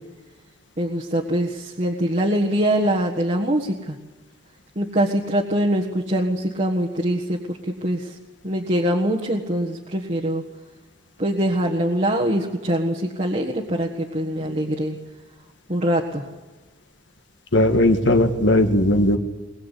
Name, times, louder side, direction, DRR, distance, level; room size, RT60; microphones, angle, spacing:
voice 1, 0.8-4.0 4.7-8.2 8.4-10.4 11.2-15.0 15.7-16.2, right 1 dB, 40° right, -2 dB, 1.6 m, -23 dB
voice 2, 17.5-19.2, left 1 dB, 65° left, 7 dB, 1.6 m, -17 dB
21.5 x 21.0 x 8.3 m, 1.2 s
head